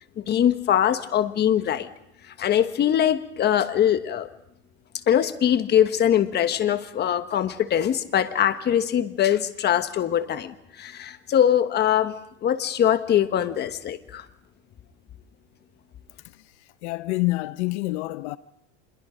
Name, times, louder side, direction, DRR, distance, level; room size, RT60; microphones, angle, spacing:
voice 1, 0.2-1.9 2.4-4.3 5.1-12.1 12.4-14.2, left 10 dB, 30° left, 1.3 m, -22 dB
voice 2, 16.8-18.4, left 20 dB, 75° left, 0.8 m, -27 dB
26.5 x 22.0 x 5.1 m
supercardioid pair, 135°, 35 cm